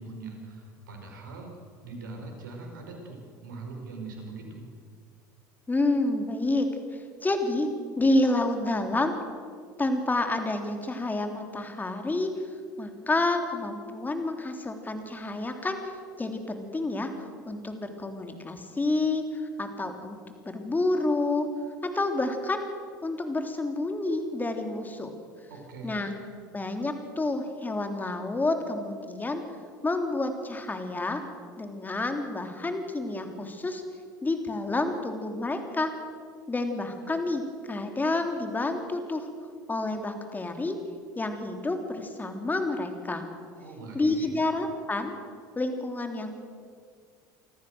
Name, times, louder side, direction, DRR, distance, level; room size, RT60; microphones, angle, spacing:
voice 1, 0.0-1.5 1.8-4.6 25.5-26.0 43.6-44.3, right 3 dB, 85° right, 2 dB, 4.8 m, -41 dB
voice 2, 5.7-6.7 6.9-7.7 8.0-9.1 9.8-12.3 12.8-17.1 17.5-20.2 20.4-21.5 21.9-22.6 23.0-25.1 25.8-26.1 26.5-29.4 29.8-31.2 31.6-33.8 34.2-35.9 36.5-39.3 39.7-40.8 41.1-43.2 43.9-45.2 45.5-46.4, left 2 dB, 15° left, 6 dB, 3.2 m, -29 dB
25.5 x 14.0 x 7.9 m, 2.1 s
hypercardioid pair, 80°, 10 cm